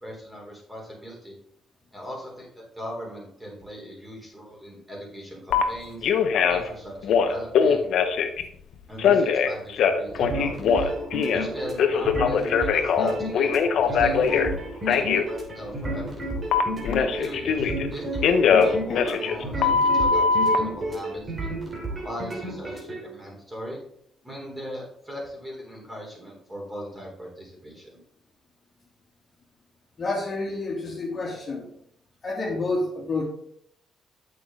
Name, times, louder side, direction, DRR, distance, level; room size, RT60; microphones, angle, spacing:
voice 1, 0.0-1.3 1.9-6.1 6.5-7.9 8.9-10.9 11.3-13.5 13.8-14.5 14.8-16.3 17.0-18.3 18.6-21.6 22.0-23.8 24.2-28.0, equal, 10° right, -2 dB, 3.7 m, -39 dB
Telephone, 5.5-5.6 6.0-6.7 7.0-8.4 9.0-11.5 11.8-14.5 14.9-15.2 16.5-17.9 18.2-20.6, left 6 dB, 75° left, 0.8 m, -21 dB
sound 1, 10.1-23.0, right 1 dB, 35° right, 3.0 m, -31 dB
voice 2, 30.0-31.7 32.2-33.3, left 2 dB, 40° left, -3 dB, 2.4 m, -29 dB
8.5 x 6.7 x 3.7 m, 0.69 s
cardioid pair, 90°, 0 cm